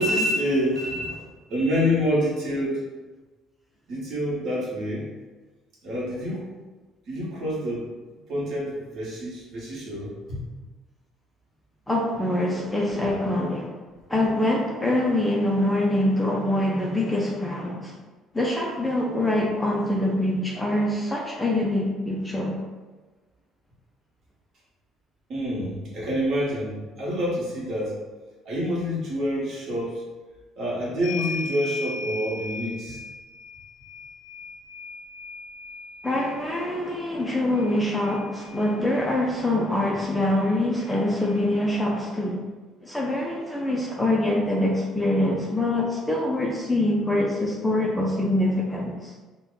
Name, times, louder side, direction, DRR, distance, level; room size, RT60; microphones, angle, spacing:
voice 1, 0.0-2.8 3.9-5.1 5.8-6.5 7.1-7.9 8.3-10.4 12.5-12.6 12.9-13.1 25.3-28.0 28.4-30.0 30.6-33.0, equal, 45° right, -5 dB, 1.1 m, -27 dB
voice 2, 11.9-13.7 14.1-17.9 18.3-22.6 36.0-42.5 42.8-49.1, left 1 dB, 5° left, -2 dB, 0.3 m, -24 dB
sound 1, 31.0-39.1 40.4-40.5 40.8-41.9, left 3 dB, 90° left, 0.3 m, -38 dB
2.8 x 2.1 x 3.7 m, 1.2 s
cardioid pair, 160°, 0 cm